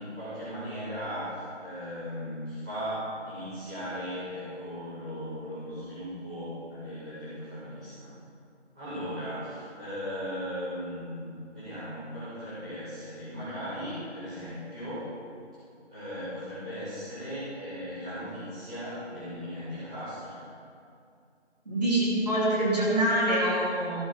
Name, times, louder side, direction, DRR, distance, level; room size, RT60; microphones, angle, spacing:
voice 1, 0.0-8.1 8.7-11.3 11.5-15.1 15.9-20.4, equal, 5° right, -17 dB, 1.8 m, -37 dB
voice 2, 21.7-24.0, right 1 dB, 35° right, -7 dB, 2.6 m, -25 dB
13.5 x 6.9 x 4.9 m, 2.4 s
figure-of-eight pair, 170°, 35 cm